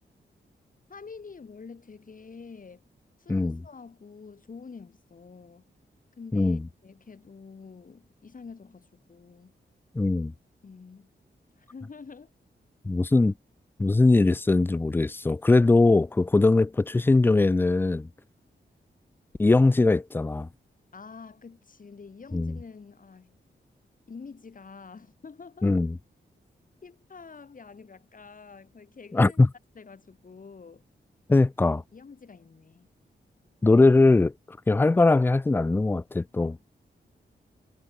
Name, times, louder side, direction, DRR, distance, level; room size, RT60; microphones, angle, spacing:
voice 1, 0.9-2.8 3.2-5.6 6.2-9.5 10.6-11.1 11.6-12.3 20.9-23.4 24.1-25.8 26.8-29.4 29.7-30.8 31.9-32.9, left 5 dB, 45° left, 6.1 m, -47 dB
voice 2, 3.3-3.6 6.3-6.6 9.9-10.3 12.8-13.3 13.8-18.1 19.4-20.5 22.3-22.6 25.6-26.0 29.1-29.5 31.3-31.8 33.6-36.6, left 3 dB, 10° left, 0.3 m, -21 dB
wide cardioid pair, 125°, 19 cm